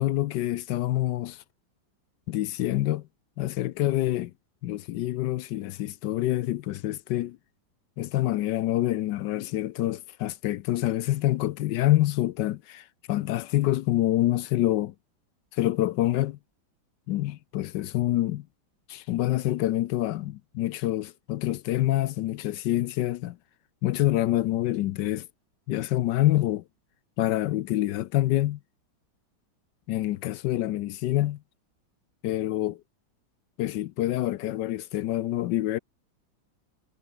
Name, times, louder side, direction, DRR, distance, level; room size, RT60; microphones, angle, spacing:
voice 1, 0.0-1.4 2.3-3.0 3.4-4.3 4.6-7.4 8.0-14.9 15.5-16.4 17.1-18.5 18.9-23.4 23.8-25.3 25.7-26.6 27.2-28.6 29.9-31.4 32.2-32.8 33.6-35.8, left 15 dB, 75° left, 1.2 m, -26 dB
omnidirectional pair, 2.1 m